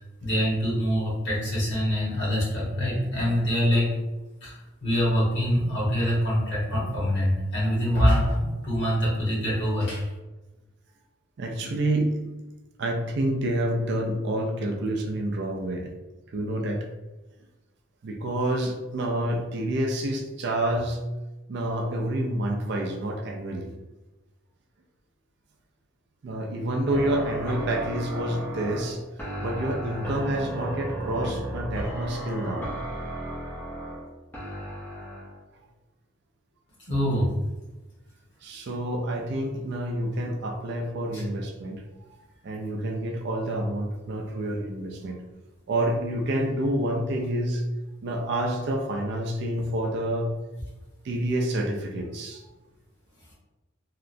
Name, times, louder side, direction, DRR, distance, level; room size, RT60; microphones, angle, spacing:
voice 1, 0.2-3.9 4.4-4.5 4.8-10.0 36.9-37.3 41.1-41.2, equal, 55° left, -6 dB, 1.0 m, -24 dB
voice 2, 11.4-12.3 12.8-15.9 16.3-16.8 18.0-21.0 21.5-23.7 26.2-29.0 29.4-32.7 38.4-41.8 42.1-42.2 42.4-45.2 45.7-47.6 48.0-50.4 51.0-52.5, right 1 dB, 50° right, 1 dB, 0.3 m, -28 dB
sound 1, 26.9-35.4, right 1 dB, 10° left, 0.4 m, -35 dB
2.8 x 2.1 x 2.5 m, 1.1 s
head